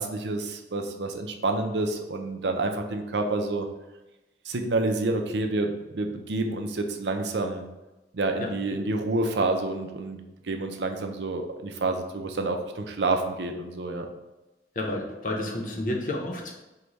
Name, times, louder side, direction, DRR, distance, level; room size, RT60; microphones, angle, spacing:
voice 1, 0.0-3.7 4.5-7.6 8.1-10.2 10.5-14.1, right 2 dB, 80° right, 5 dB, 0.6 m, -28 dB
voice 2, 14.8-16.6, left 1 dB, 50° left, 0 dB, 0.8 m, -30 dB
4.8 x 2.3 x 4.0 m, 1.0 s
head